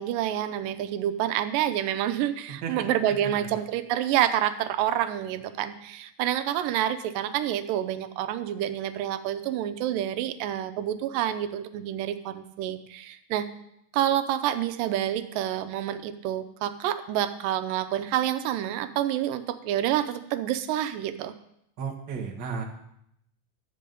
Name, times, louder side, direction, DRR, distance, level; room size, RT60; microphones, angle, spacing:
voice 1, 0.0-13.5 13.9-21.3, right 11 dB, 90° right, 10 dB, 2.4 m, -28 dB
voice 2, 21.8-22.6, right 6 dB, 45° right, 1 dB, 1.6 m, -34 dB
12.0 x 8.4 x 5.3 m, 0.76 s
omnidirectional pair, 3.8 m